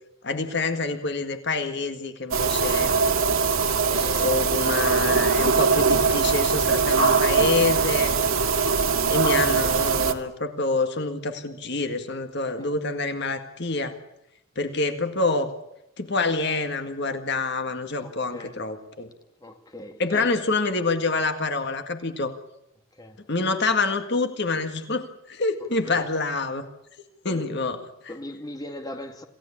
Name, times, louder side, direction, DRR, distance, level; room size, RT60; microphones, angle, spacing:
voice 1, 0.2-2.9 4.2-8.1 9.1-13.9 14.6-15.5 16.0-19.1 20.0-22.3 23.3-26.7 27.2-28.1, left 3 dB, 50° left, 1.9 m, -27 dB
sound 1, 2.3-10.1, right 5 dB, 75° right, 2.0 m, -21 dB
voice 2, 3.9-4.5 12.5-12.8 18.0-18.6 19.4-20.3 22.9-23.2 25.9-26.0 27.2-27.5 28.1-29.2, left 1 dB, 15° left, 2.1 m, -39 dB
27.5 x 16.5 x 8.7 m
head